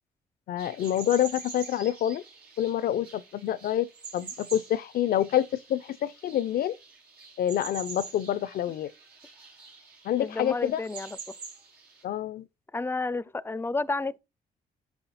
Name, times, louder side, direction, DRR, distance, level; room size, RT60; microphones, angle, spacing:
voice 1, 0.5-2.2 2.6-6.8 7.4-8.9 10.0-10.8 12.0-12.5, left 11 dB, 75° left, 0.5 m, -27 dB
sound 1, 0.6-12.0, right 5 dB, 90° right, 2.7 m, -46 dB
voice 2, 10.2-11.2 12.7-14.2, left 3 dB, 15° left, 0.5 m, -31 dB
7.4 x 5.7 x 4.1 m
cardioid pair, 75°, 16 cm